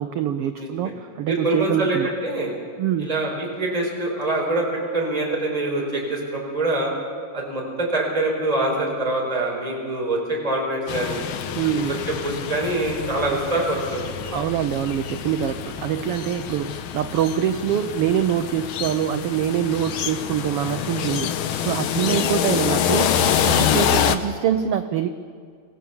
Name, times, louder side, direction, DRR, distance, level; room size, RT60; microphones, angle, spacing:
voice 1, 0.0-2.1 2.8-3.1 11.5-12.0 14.3-21.3 21.6-23.2 23.5-25.1, right 9 dB, 85° right, 9 dB, 1.3 m, -24 dB
voice 2, 0.6-0.9 1.3-2.5 3.0-4.7 4.9-6.9 7.3-11.2 12.1-14.4 22.1-22.5, right 2 dB, 10° right, -1 dB, 4.2 m, -25 dB
sound 1, 10.9-24.2, left 9 dB, 75° left, 1.1 m, -26 dB
26.5 x 16.0 x 7.1 m, 2.1 s
omnidirectional pair, 3.5 m